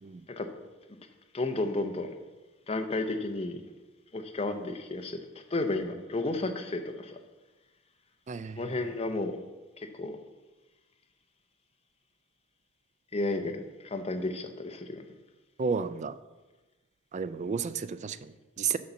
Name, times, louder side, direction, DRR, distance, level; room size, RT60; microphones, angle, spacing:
voice 1, 1.3-2.1 2.7-3.6 4.1-5.2 5.5-7.2 8.6-9.4 9.8-10.2 13.1-15.0, left 2 dB, 30° left, 7 dB, 0.6 m, -32 dB
voice 2, 8.3-8.9 15.6-16.2 17.1-18.8, right 6 dB, 35° right, 13 dB, 0.3 m, -33 dB
6.5 x 5.5 x 6.9 m, 1.1 s
head